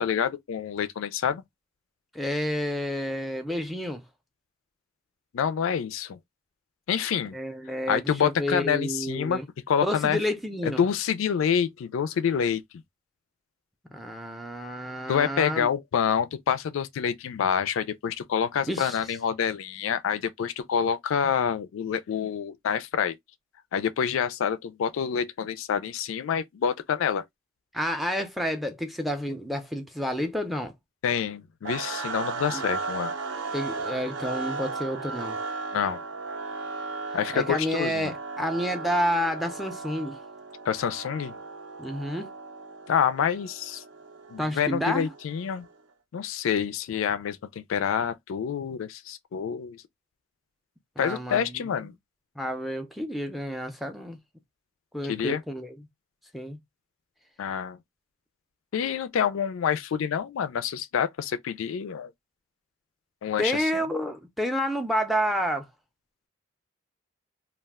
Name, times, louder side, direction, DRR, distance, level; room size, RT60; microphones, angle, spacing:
voice 1, 0.0-1.4 5.3-6.2 6.9-7.4 7.9-9.4 9.7-10.2 10.6-12.6 15.1-23.1 23.7-27.2 31.0-33.1 35.7-36.0 37.1-38.1 40.7-41.3 42.9-43.8 44.3-45.7 46.1-49.8 51.0-51.9 55.1-55.4 57.4-57.8 58.7-62.1 63.2-63.7, left 7 dB, 80° left, 0.3 m, -27 dB
voice 2, 2.1-4.0 7.3-9.5 9.8-10.8 13.9-15.7 18.7-19.0 27.7-30.7 32.5-32.6 33.5-35.4 37.3-40.2 41.8-42.3 44.4-45.1 51.0-51.6 52.4-54.2 54.9-55.9 56.3-56.6 63.4-65.7, equal, ahead, 0.4 m, -30 dB
sound 1, 31.6-45.7, right 4 dB, 60° right, 0.5 m, -36 dB
2.3 x 2.2 x 3.3 m
head